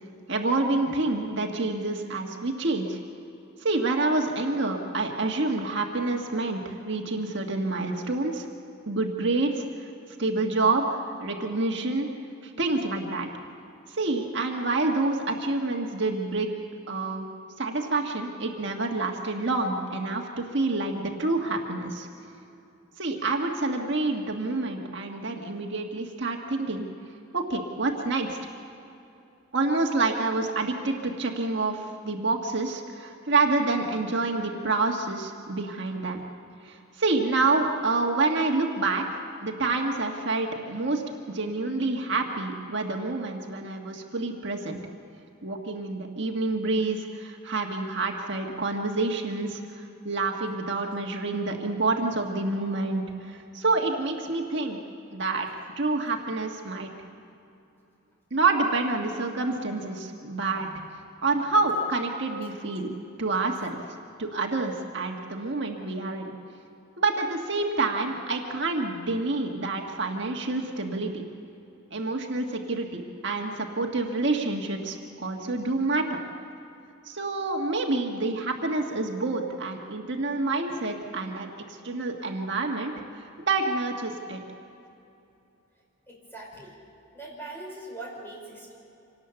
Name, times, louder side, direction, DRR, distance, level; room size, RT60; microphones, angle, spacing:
voice 1, 0.3-3.0 3.6-8.5 8.9-9.9 10.2-12.1 12.4-13.3 13.9-16.6 16.9-17.3 17.6-22.1 23.0-26.9 27.3-28.4 29.5-36.2 36.6-44.8 45.4-54.8 55.1-55.5 55.8-56.9 58.3-60.7 61.2-63.8 64.2-66.3 67.0-71.2 71.9-76.2 77.1-84.4, right 3 dB, 60° right, 1 dB, 1.6 m, -28 dB
voice 2, 86.1-86.7 87.1-88.7, right 2 dB, 10° left, -2 dB, 5.4 m, -41 dB
26.0 x 18.5 x 7.0 m, 2.8 s
head